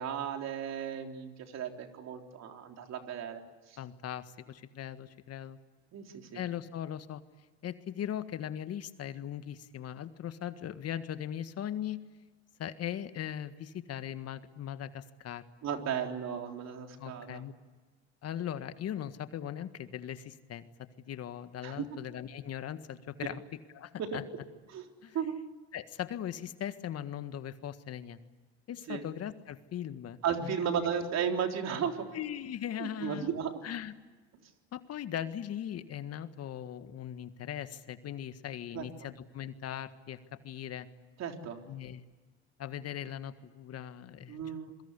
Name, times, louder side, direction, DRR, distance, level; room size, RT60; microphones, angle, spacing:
voice 1, 0.0-3.4 3.7-3.8 5.9-6.4 15.6-17.4 21.6-21.9 23.2-23.3 24.0-24.2 24.7-24.9 25.1-25.4 28.9-29.0 30.2-32.1 32.8-33.6 38.7-38.9 41.2-41.6 44.3-44.8, right 7 dB, 55° right, 4 dB, 3.8 m, -35 dB
voice 2, 3.8-5.6 6.3-7.2 7.6-12.0 12.6-15.4 17.0-17.5 18.2-20.7 21.1-23.4 23.7-24.2 25.0-25.2 25.7-28.2 28.7-30.6 32.1-33.3 33.6-33.9 34.7-40.2 40.4-40.9 41.7-42.0 42.6-44.4, left 10 dB, 50° left, 11 dB, 1.7 m, -39 dB
27.0 x 23.0 x 8.3 m, 1.3 s
hypercardioid pair, 70°, 31 cm